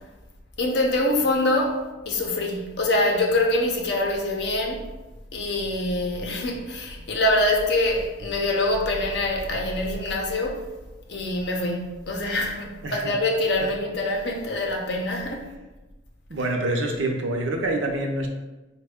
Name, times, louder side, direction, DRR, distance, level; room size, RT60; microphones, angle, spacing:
voice 1, 0.6-1.8 2.1-4.8 5.3-10.6 11.1-15.5 16.4-16.5, left 1 dB, 60° left, 0 dB, 0.6 m, -24 dB
voice 2, 12.8-13.1 16.3-18.3, right 2 dB, 85° right, 2 dB, 0.6 m, -26 dB
4.2 x 2.2 x 3.5 m, 1.1 s
head